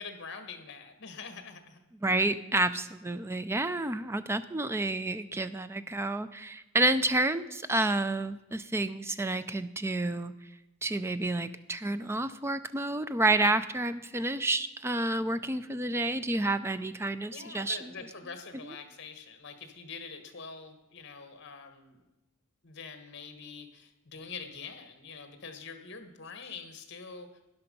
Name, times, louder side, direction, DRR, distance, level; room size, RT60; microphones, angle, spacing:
voice 1, 0.0-1.8 17.3-22.0 22.6-27.3, left 5 dB, 55° left, 8 dB, 1.4 m, -45 dB
voice 2, 2.0-10.3 10.8-17.8 18.6-18.7, right 2 dB, 10° right, 13 dB, 0.4 m, -29 dB
12.5 x 10.5 x 5.3 m, 1.0 s
head